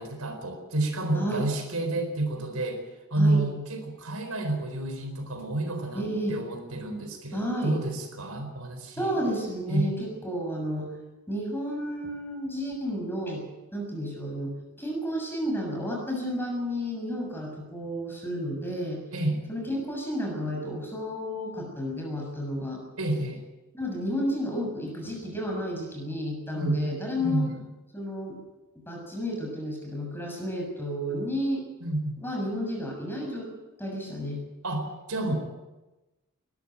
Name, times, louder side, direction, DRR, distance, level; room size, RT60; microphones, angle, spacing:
voice 1, 0.0-2.8 3.1-9.2 9.7-9.9 19.1-19.4 23.0-23.4 26.5-26.9 27.2-27.5 31.8-32.2 34.6-35.3, right 2 dB, 85° right, 6 dB, 4.3 m, -29 dB
voice 2, 5.9-6.4 7.3-7.8 9.0-10.9 11.3-13.4 13.7-19.0 19.5-22.8 23.7-27.4 27.9-28.4 28.7-31.6 32.2-33.5 33.8-34.4 35.3-35.4, equal, 10° left, 1 dB, 6.8 m, -31 dB
21.5 x 13.5 x 9.1 m, 1.1 s
head